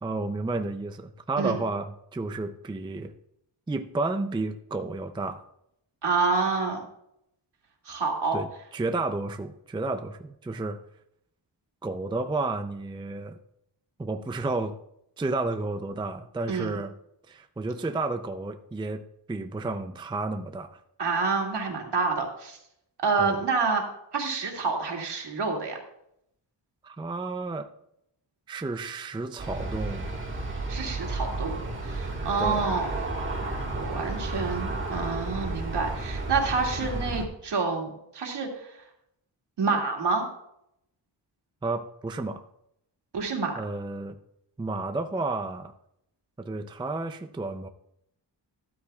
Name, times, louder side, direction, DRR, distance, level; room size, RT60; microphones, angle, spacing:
voice 1, 0.0-3.1 3.7-5.4 8.3-10.8 11.8-13.4 14.0-14.7 15.2-16.9 17.3-19.0 19.3-20.8 23.2-23.4 26.8-27.7 28.5-30.1 32.4-32.6 36.8-37.2 41.6-42.4 43.5-44.2 44.6-45.7 46.4-47.7, right 3 dB, 10° right, 8 dB, 0.4 m, -31 dB
voice 2, 6.0-6.8 7.9-8.4 16.5-16.8 21.0-22.6 23.0-23.8 24.1-25.8 30.7-31.6 31.8-32.9 33.7-38.5 39.6-40.2 43.1-43.6, right 4 dB, 65° right, 1 dB, 2.3 m, -28 dB
Aircraft, 29.4-37.3, right 2 dB, 25° right, 1.7 m, -32 dB
13.0 x 12.5 x 2.3 m, 0.76 s
wide cardioid pair, 110°, 44 cm